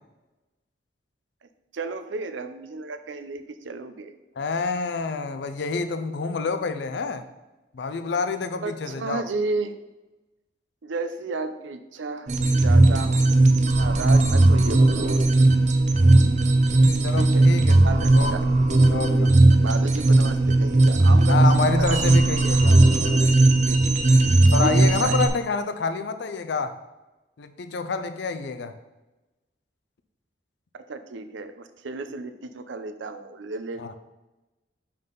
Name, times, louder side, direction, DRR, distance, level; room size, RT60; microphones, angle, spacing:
voice 1, 1.4-4.1 8.6-9.7 10.8-13.3 13.7-15.2 17.2-17.5 17.8-18.4 19.5-22.0 23.6-24.2 24.6-25.2 30.7-33.9, right 3 dB, 85° right, 10 dB, 0.6 m, -33 dB
voice 2, 4.4-7.2 7.7-9.2 17.0-17.8 18.1-18.3 18.9-19.3 21.3-22.8 24.5-26.8 27.4-28.7 33.8-33.9, left 4 dB, 65° left, 10 dB, 0.4 m, -27 dB
sound 1, 12.3-25.3, right 2 dB, 40° right, 0.5 m, -18 dB
5.5 x 5.5 x 3.8 m, 1.1 s
head